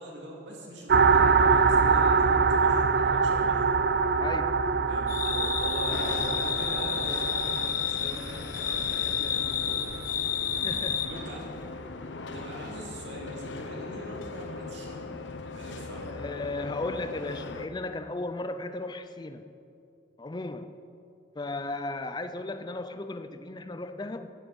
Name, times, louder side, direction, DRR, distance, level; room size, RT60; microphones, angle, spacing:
voice 1, 0.0-3.7 4.9-9.9 11.0-11.4 12.3-15.1 15.4-16.1, right 1 dB, 80° right, -2 dB, 2.2 m, -42 dB
sound 1, 0.9-7.7, right 5 dB, 60° right, 0.5 m, -24 dB
voice 2, 4.2-4.6 10.6-11.1 16.1-19.4 20.2-20.7 21.4-24.3, left 2 dB, 25° left, 10 dB, 0.5 m, -35 dB
sound 2, 5.1-11.1, left 8 dB, 50° left, 1.3 m, -30 dB
sound 3, 5.9-17.7, left 3 dB, 90° left, 0.7 m, -40 dB
14.5 x 11.5 x 5.3 m, 2.6 s
head